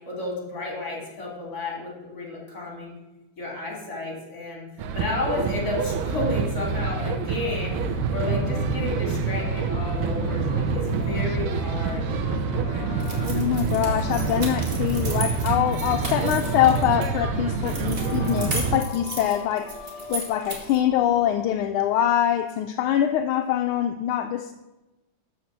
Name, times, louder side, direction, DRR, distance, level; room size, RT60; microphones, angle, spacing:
voice 1, 0.1-2.9 3.4-4.6 4.9-12.0, left 2 dB, 45° left, -1 dB, 3.3 m, -32 dB
sound 1, 4.8-18.8, right 5 dB, 80° right, 1.6 m, -26 dB
Singing, 7.8-21.6, left 6 dB, 65° left, 1.3 m, -41 dB
sound 2, 13.0-17.1 17.6-20.8, right 2 dB, 30° right, 1.9 m, -36 dB
voice 2, 13.3-19.8 20.1-24.5, left 11 dB, 80° left, 6 dB, 1.4 m, -24 dB
12.5 x 4.4 x 7.3 m, 1.0 s
omnidirectional pair, 2.3 m